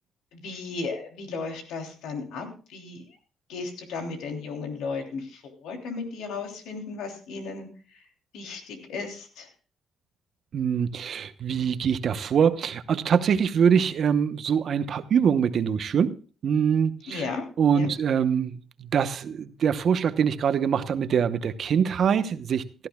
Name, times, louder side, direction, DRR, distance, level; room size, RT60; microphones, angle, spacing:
voice 1, 0.3-3.0 3.5-7.7 8.3-9.5 17.1-17.4 17.7-17.9, left 4 dB, 85° left, 3.1 m, -35 dB
voice 2, 10.5-22.9, right 7 dB, 55° right, 0.9 m, -24 dB
16.5 x 14.0 x 2.3 m
cardioid pair, 90°, 0 cm